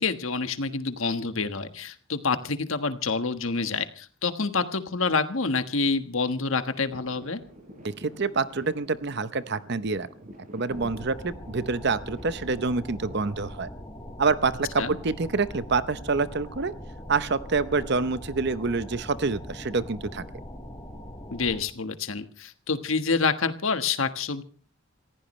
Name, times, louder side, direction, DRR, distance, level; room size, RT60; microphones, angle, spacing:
voice 1, 0.0-7.4 14.8-15.0 21.3-24.4, left 4 dB, 70° left, 10 dB, 1.4 m, -27 dB
sound 1, 6.9-13.2, equal, 35° right, 6.0 m, -47 dB
voice 2, 7.8-10.1 10.5-13.7 14.2-16.7 17.1-20.2, right 4 dB, 50° right, 14 dB, 0.7 m, -27 dB
sound 2, 10.7-21.6, left 1 dB, 15° left, 5.7 m, -41 dB
27.5 x 15.5 x 3.2 m, 0.37 s
head